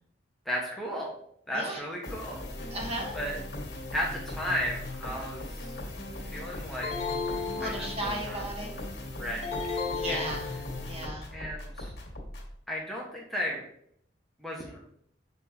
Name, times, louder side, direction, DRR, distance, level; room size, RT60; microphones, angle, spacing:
voice 1, 0.4-1.1 1.5-2.4 3.1-3.4 3.9-5.8 6.2-7.1 7.6-8.4 9.1-10.2 11.3-11.9 12.7-13.6 14.4-14.8, equal, ahead, -4 dB, 1.3 m, -35 dB
sound 1, 2.0-12.5, left 1 dB, 60° left, 2.0 m, -39 dB
voice 2, 2.7-3.2 7.5-8.7 9.9-10.5 10.8-11.3, right 1 dB, 35° right, -1 dB, 1.7 m, -35 dB
sound 2, 6.8-8.4 9.4-11.0, left 5 dB, 35° left, 0.8 m, -34 dB
6.9 x 4.4 x 4.8 m, 0.68 s
head